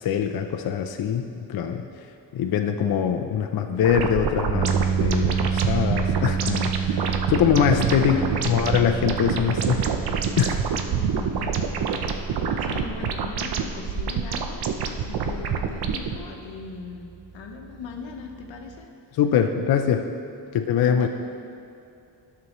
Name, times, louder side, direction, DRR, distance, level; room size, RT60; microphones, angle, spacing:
voice 1, 0.0-1.9 2.3-4.7 5.0-8.2 8.4-9.9 10.4-10.6 19.1-20.1 20.5-21.1, left 8 dB, 55° left, 5 dB, 0.5 m, -23 dB
sound 1, 3.8-16.2, right 6 dB, 60° right, 0.6 m, -27 dB
sound 2, 4.5-18.8, right 7 dB, 25° right, 0.3 m, -31 dB
voice 2, 7.7-8.6 10.9-18.9 20.9-21.1, left 5 dB, 90° left, 3 dB, 1.0 m, -39 dB
11.0 x 6.9 x 3.0 m, 2.6 s
cardioid pair, 125°, 44 cm